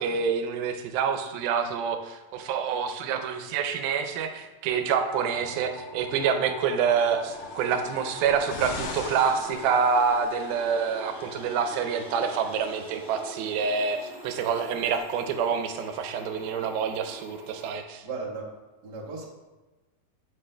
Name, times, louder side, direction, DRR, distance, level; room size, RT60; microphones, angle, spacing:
voice 1, 0.0-18.0, right 6 dB, 90° right, 7 dB, 2.5 m, -27 dB
sound 1, 5.2-17.7, left 1 dB, 10° right, 0.3 m, -43 dB
sound 2, 7.1-10.4 11.4-11.5, left 3 dB, 85° left, 2.7 m, -41 dB
voice 2, 18.0-18.5 18.8-19.3, right 4 dB, 45° right, -5 dB, 1.3 m, -36 dB
14.5 x 5.2 x 2.2 m, 1.1 s
omnidirectional pair, 4.2 m